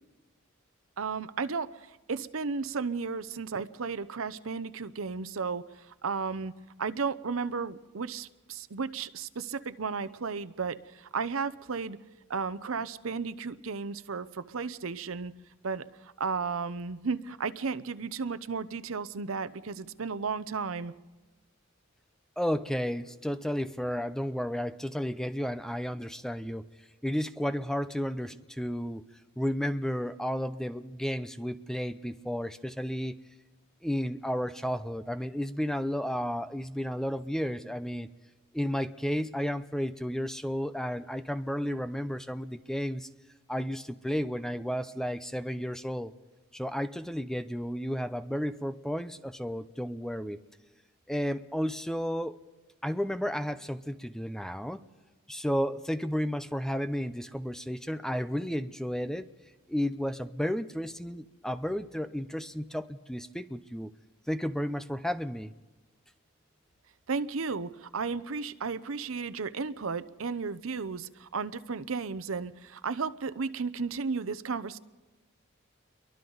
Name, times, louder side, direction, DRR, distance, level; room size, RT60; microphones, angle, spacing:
voice 1, 1.0-6.5 6.8-12.0 12.3-15.3 15.6-20.9 67.1-74.8, right 5 dB, 75° right, 14 dB, 0.7 m, -34 dB
voice 2, 22.4-26.7 27.0-29.0 29.4-33.2 33.8-38.1 38.5-43.1 43.5-46.1 46.5-50.4 51.1-52.4 52.8-54.8 55.3-59.3 59.7-63.9 64.3-65.5, equal, 5° left, 12 dB, 0.5 m, -32 dB
29.5 x 23.0 x 4.0 m, 1.2 s
head